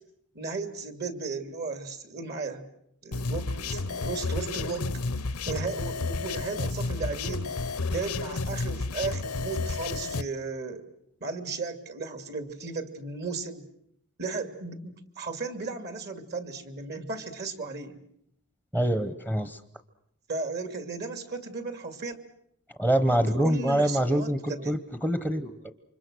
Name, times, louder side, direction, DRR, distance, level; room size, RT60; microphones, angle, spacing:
voice 1, 0.3-2.7 3.0-4.9 5.5-7.6 7.9-10.8 11.2-13.7 14.2-18.0 20.3-22.2 23.1-23.2 23.4-24.7, right 4 dB, 50° right, 7 dB, 2.5 m, -35 dB
sound 1, 3.1-10.2, left 3 dB, 85° left, 1.0 m, -31 dB
voice 2, 18.7-19.6 22.8-25.7, right 1 dB, 10° right, 9 dB, 1.0 m, -25 dB
29.0 x 25.5 x 6.3 m, 0.72 s
head